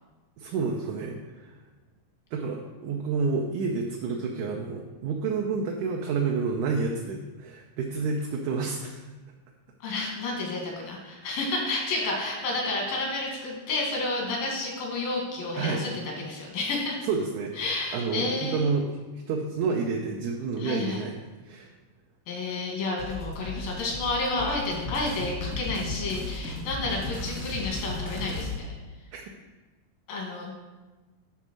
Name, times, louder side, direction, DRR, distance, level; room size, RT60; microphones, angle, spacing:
voice 1, 0.4-1.6 2.3-9.1 15.6-15.8 17.0-17.5 17.9-19.0 19.3-21.2 21.4-21.7 29.1-29.2, right 4 dB, 75° right, 0 dB, 1.9 m, -29 dB
voice 2, 9.8-15.9 16.2-17.0 17.6-18.6 20.6-21.0 22.3-28.7 30.1-30.5, left 2 dB, 85° left, -2 dB, 3.8 m, -30 dB
sound 1, 23.0-28.6, left 2 dB, 50° left, 1.0 m, -35 dB
11.0 x 4.1 x 6.2 m, 1.2 s
omnidirectional pair, 4.0 m